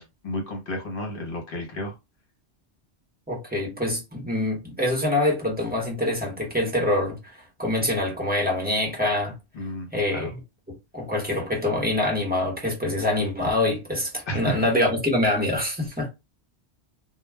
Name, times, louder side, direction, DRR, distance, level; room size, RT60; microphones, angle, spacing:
voice 1, 0.0-1.9 9.5-10.3 14.3-14.7, equal, 55° left, 1.1 m, -32 dB
voice 2, 3.3-9.3 9.9-10.4 10.9-16.1, left 1 dB, 10° right, 0.8 m, -25 dB
2.3 x 2.2 x 3.3 m
omnidirectional pair, 1.2 m